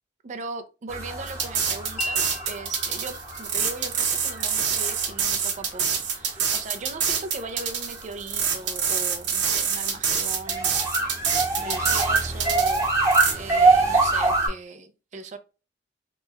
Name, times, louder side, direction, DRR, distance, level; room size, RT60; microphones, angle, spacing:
voice 1, 0.2-10.8 11.6-15.4, right 3 dB, 40° right, 0.4 m, -38 dB
sound 1, 0.9-14.5, right 3 dB, 15° right, 0.9 m, -25 dB
sound 2, 1.3-13.3, right 7 dB, 85° right, 0.9 m, -26 dB
Wind chime, 2.0-8.1, left 2 dB, 45° left, 0.4 m, -41 dB
3.0 x 2.2 x 3.4 m
head